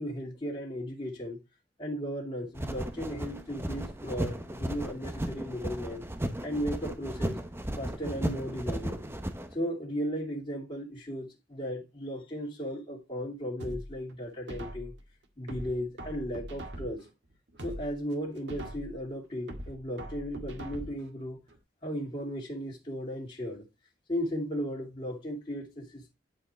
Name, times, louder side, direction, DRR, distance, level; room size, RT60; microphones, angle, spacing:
voice 1, 0.0-1.4 1.8-6.0 6.4-7.4 7.8-9.0 9.5-14.9 15.4-17.1 17.6-21.4 21.8-23.6 24.1-26.1, equal, 30° left, 2.6 m, -36 dB
sound 1, 2.6-9.5, right 1 dB, 15° right, 0.9 m, -35 dB
sound 2, 13.6-15.0 15.5-17.1 17.5-19.0 19.5-21.1 21.5-21.6, right 1 dB, 80° right, 1.8 m, -42 dB
10.5 x 5.0 x 4.3 m
head